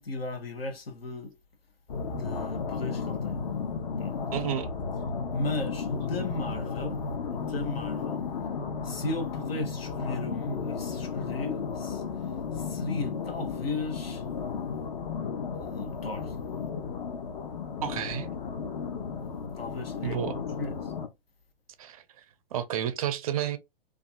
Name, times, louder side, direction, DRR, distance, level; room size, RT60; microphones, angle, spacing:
voice 1, 0.0-1.3 2.0-3.4 4.0-4.2 5.3-7.0 7.3-8.2 8.8-12.0 12.5-14.3 15.6-16.4 19.6-20.9, left 2 dB, 85° left, 0.8 m, -35 dB
sound 1, 1.9-21.1, left 5 dB, 45° left, 0.6 m, -34 dB
voice 2, 4.3-4.7 17.8-18.3 20.0-20.4 21.8-22.0 22.5-23.6, right 10 dB, 40° right, 0.4 m, -30 dB
2.5 x 2.3 x 2.3 m
figure-of-eight pair, 125°, 29 cm